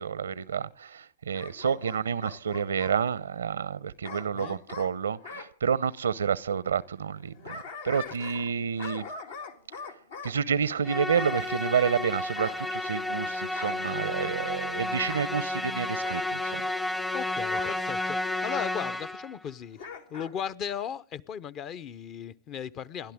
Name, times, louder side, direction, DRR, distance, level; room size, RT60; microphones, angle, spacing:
voice 1, 0.0-9.1 10.2-16.7, right 7 dB, 85° right, 0.7 m, -29 dB
Bark / Growling, 1.3-3.0 4.0-5.5 7.1-8.5 8.8-10.4 11.1-11.5 12.4-13.2 13.6-13.9 15.0-15.3 16.0-16.3 17.5-17.8 18.4-18.7 19.8-20.3 20.7-20.8, left 5 dB, 70° left, 2.0 m, -42 dB
Musical instrument, 10.8-19.4, left 2 dB, 5° left, 0.7 m, -31 dB
voice 2, 17.1-19.8 20.1-23.1, left 8 dB, 40° left, 0.8 m, -36 dB
28.5 x 12.0 x 3.6 m
hypercardioid pair, 100°, 0 cm